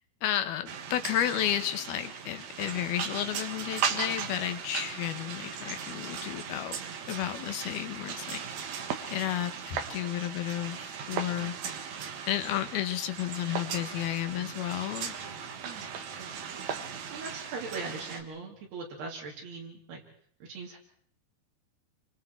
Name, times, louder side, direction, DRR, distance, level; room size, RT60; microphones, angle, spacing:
voice 1, 0.2-6.8 7.1-11.8 12.3-15.1, left 12 dB, 70° left, 10 dB, 3.1 m, -32 dB
sound 1, 0.7-18.2, right 7 dB, 60° right, 2.2 m, -37 dB
voice 2, 17.1-20.0 20.4-20.8, right 4 dB, 75° right, -2 dB, 4.9 m, -40 dB
28.5 x 25.5 x 4.6 m, 0.62 s
omnidirectional pair, 4.7 m